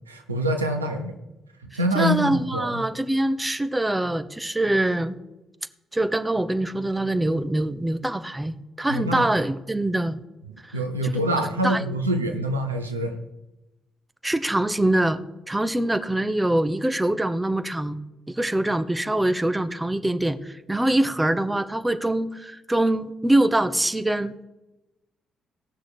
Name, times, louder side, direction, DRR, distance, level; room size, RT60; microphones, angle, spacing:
voice 1, 0.1-1.1 1.6-2.8 8.9-9.3 10.7-13.2, equal, 90° right, 5 dB, 0.9 m, -25 dB
voice 2, 1.9-5.2 5.9-10.2 10.6-11.1 11.6-11.8 14.2-15.2 15.5-18.0 18.3-24.3, right 1 dB, 15° right, 10 dB, 1.0 m, -24 dB
17.0 x 6.3 x 5.0 m, 0.99 s
figure-of-eight pair, 40°, 0 cm